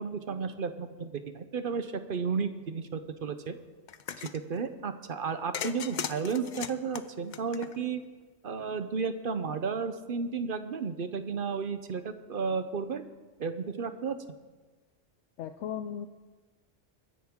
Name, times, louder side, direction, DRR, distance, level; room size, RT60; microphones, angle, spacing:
voice 1, 0.0-3.6 4.3-8.0 8.4-13.0 13.4-14.2, right 5 dB, 55° right, 10 dB, 0.8 m, -33 dB
sound 1, 3.9-4.4 5.5-8.0, left 8 dB, 50° left, 0.6 m, -37 dB
voice 2, 15.4-16.1, left 8 dB, 75° left, 8 dB, 0.9 m, -36 dB
22.5 x 10.5 x 3.7 m, 1.3 s
omnidirectional pair, 1.2 m